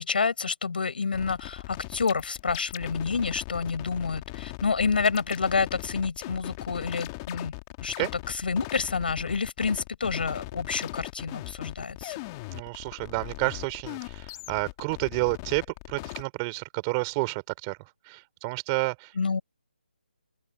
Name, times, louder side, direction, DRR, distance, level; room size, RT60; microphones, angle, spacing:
voice 1, 0.0-7.5 7.8-7.9 8.3-12.2 19.2-19.4, left 5 dB, 60° left, 5.7 m, -28 dB
sound 1, 1.1-16.2, left 23 dB, 20° left, 2.0 m, -40 dB
voice 2, 12.5-19.1, right 29 dB, 20° right, 3.2 m, -30 dB
open air
figure-of-eight pair, 160°, 6 cm